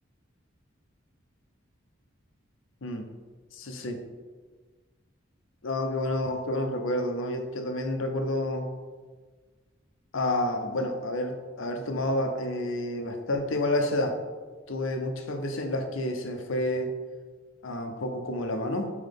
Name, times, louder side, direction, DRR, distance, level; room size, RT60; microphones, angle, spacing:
voice 1, 2.8-3.1 3.5-4.0 5.6-8.7 10.1-14.2 14.7-16.9 17.6-18.9, left 1 dB, 80° left, 5 dB, 0.8 m, -29 dB
9.1 x 3.1 x 3.6 m, 1.4 s
head